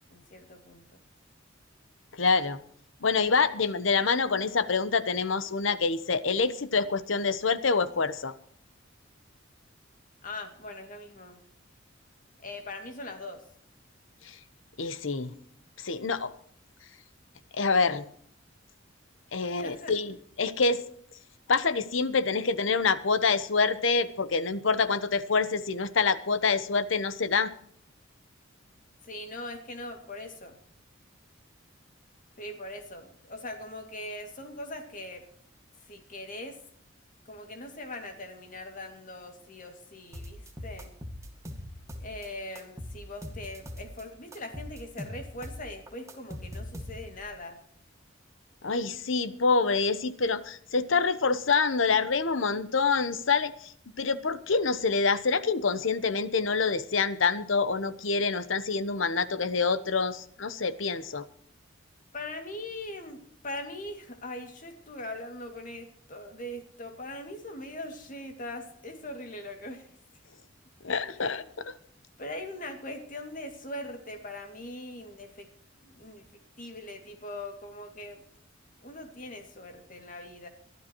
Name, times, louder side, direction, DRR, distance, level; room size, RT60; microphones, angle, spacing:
voice 1, 0.1-1.0 10.2-11.4 12.4-13.4 19.5-19.9 29.0-30.6 32.4-35.2 35.9-36.6 37.3-40.9 42.0-47.6 62.1-69.9 71.0-71.5 72.2-75.5 75.8-78.2 78.8-80.5, left 1 dB, 40° left, 5 dB, 2.3 m, -41 dB
voice 2, 2.1-2.6 3.0-8.3 14.2-14.4 14.8-15.3 15.8-16.3 17.5-18.0 19.3-20.8 21.5-27.5 48.6-53.7 54.0-61.2 70.8-71.7, left 4 dB, 75° left, 14 dB, 0.9 m, -26 dB
sound 1, 40.1-42.3 42.5-44.0 44.3-47.3, left 1 dB, 15° right, 1.8 m, -41 dB
22.5 x 12.5 x 3.0 m, 0.63 s
head